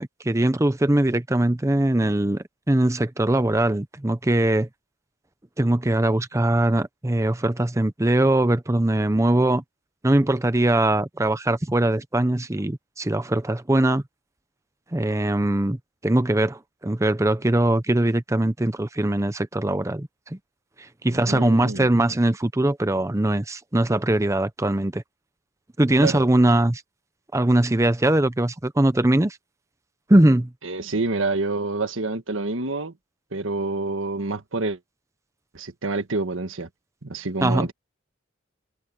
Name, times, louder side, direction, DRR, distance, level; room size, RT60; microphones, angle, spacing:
voice 1, 0.0-4.7 5.6-9.6 10.0-14.0 14.9-20.4 20.8-25.0 25.8-26.8 27.3-29.4 30.1-30.5 37.4-37.7, right 1 dB, 15° right, 0.7 m, -21 dB
voice 2, 21.1-21.9 26.0-26.2 30.6-32.9 33.3-34.8 35.5-36.7 37.0-37.7, right 3 dB, 90° right, 1.6 m, -27 dB
head